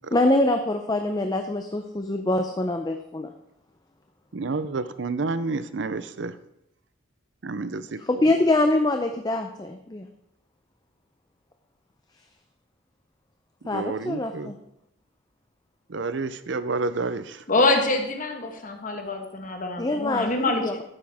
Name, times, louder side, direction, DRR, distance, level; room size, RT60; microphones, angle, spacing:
voice 1, 0.1-3.3 8.0-10.1 13.7-14.6 19.8-20.8, left 2 dB, 20° left, 6 dB, 0.6 m, -24 dB
voice 2, 4.3-6.3 7.4-8.0 13.7-14.5 15.9-17.4, right 3 dB, 65° right, 13 dB, 0.6 m, -29 dB
voice 3, 17.5-20.6, left 2 dB, 40° left, 4 dB, 1.4 m, -25 dB
12.0 x 9.1 x 3.6 m, 0.80 s
head